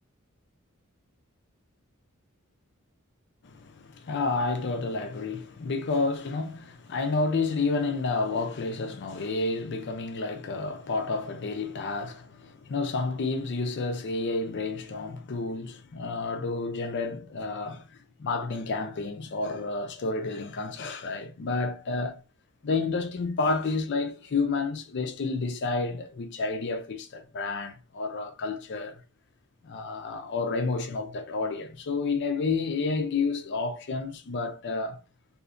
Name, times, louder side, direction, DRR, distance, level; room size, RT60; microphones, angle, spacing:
voice 1, 3.4-22.2 22.6-29.0 29.6-35.0, left 3 dB, 55° left, 0.5 m, -30 dB
2.7 x 2.2 x 2.5 m
head